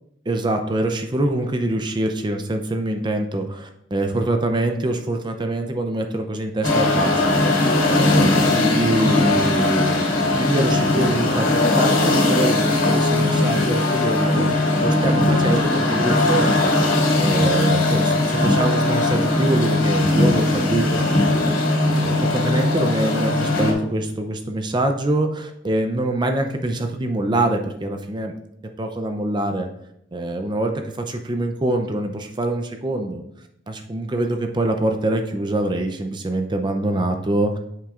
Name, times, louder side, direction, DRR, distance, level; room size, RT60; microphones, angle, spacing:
voice 1, 0.3-7.2 7.9-11.5 11.7-16.7 17.2-21.0 21.8-28.3 28.8-29.7 30.1-33.2 33.7-37.6, right 1 dB, 25° right, 5 dB, 0.5 m, -24 dB
sound 1, 6.6-23.7, left 2 dB, 80° left, 2.4 m, -19 dB
8.7 x 7.5 x 2.5 m, 0.75 s
head